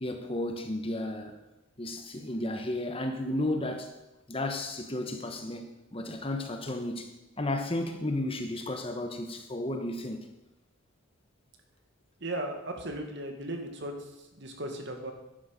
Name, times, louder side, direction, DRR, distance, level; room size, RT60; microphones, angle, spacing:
voice 1, 0.0-1.3 1.8-3.9 4.3-7.1 7.4-10.3, left 1 dB, 25° left, 1.1 m, -33 dB
voice 2, 12.2-13.9 14.3-15.1, right 1 dB, 55° right, 2.0 m, -36 dB
11.5 x 11.0 x 5.3 m
head